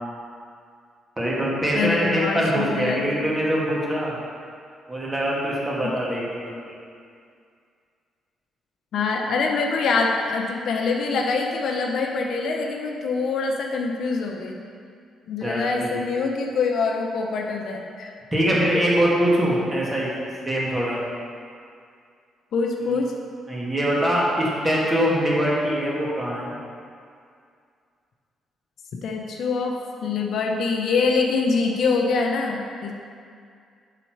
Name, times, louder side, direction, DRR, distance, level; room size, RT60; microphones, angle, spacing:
voice 1, 1.2-4.2 4.9-6.8 15.4-16.0 18.3-20.1 20.4-21.0 22.8-23.0 23.5-26.5, equal, 20° right, -5 dB, 1.5 m, -23 dB
voice 2, 1.7-3.1 5.8-5.9 8.9-14.6 15.3-18.1 22.5-23.1 29.0-29.8 30.0-32.9, left 4 dB, 65° left, 2 dB, 0.6 m, -24 dB
5.9 x 4.0 x 4.5 m, 2.3 s
cardioid pair, 90°, 0 cm